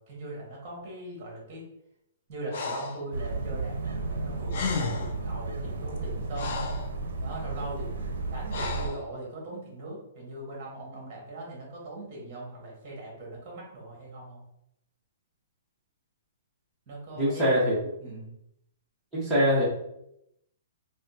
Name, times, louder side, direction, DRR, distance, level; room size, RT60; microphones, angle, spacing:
voice 1, 0.1-1.6 2.3-6.7 7.2-7.9 8.3-14.4 16.9-17.4 18.0-18.3, right 2 dB, 30° right, -3 dB, 1.4 m, -40 dB
Breathing, 2.5-3.0 4.2-4.3 4.5-5.2 5.9-6.9 8.5-9.0, left 4 dB, 50° left, 0.4 m, -33 dB
sound 1, 3.1-8.9, right 3 dB, 75° right, 0.5 m, -33 dB
voice 2, 17.2-17.7 19.1-19.6, equal, 5° right, -9 dB, 0.9 m, -23 dB
3.4 x 2.3 x 2.7 m, 0.81 s
hypercardioid pair, 165°, 0 cm